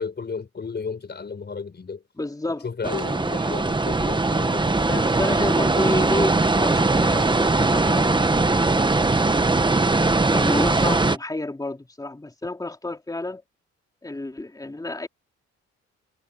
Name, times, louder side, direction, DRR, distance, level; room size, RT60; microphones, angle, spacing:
voice 1, 0.0-2.0 2.6-4.8, left 5 dB, 35° left, 4.5 m, -33 dB
voice 2, 2.2-2.7 4.8-8.9 10.3-13.4 14.0-15.1, left 2 dB, 10° left, 2.7 m, -30 dB
sound 1, 2.8-11.2, right 3 dB, 15° right, 1.3 m, -20 dB
cardioid pair, 90°, 30 cm